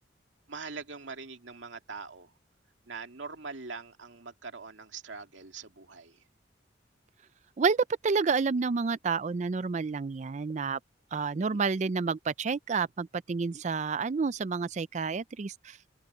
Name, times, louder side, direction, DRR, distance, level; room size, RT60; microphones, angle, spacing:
voice 1, 0.5-2.3 2.9-6.2 11.4-11.6, right 4 dB, 85° right, 2.3 m, -43 dB
voice 2, 7.6-10.8 11.1-15.9, right 4 dB, 40° right, 0.4 m, -29 dB
head